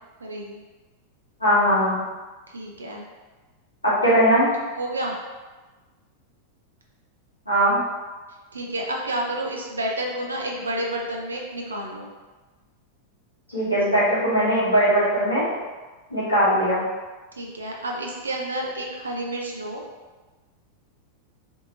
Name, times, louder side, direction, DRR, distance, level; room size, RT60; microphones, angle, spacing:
voice 1, 0.2-0.6 2.5-3.0 4.8-5.1 8.5-12.1 17.4-19.8, right 1 dB, 75° right, -1 dB, 0.5 m, -30 dB
voice 2, 1.4-2.0 3.8-4.5 7.5-7.8 13.5-15.5 16.1-16.9, equal, 85° left, -10 dB, 1.3 m, -20 dB
3.6 x 2.8 x 2.5 m, 1.3 s
figure-of-eight pair, 90°, 0 cm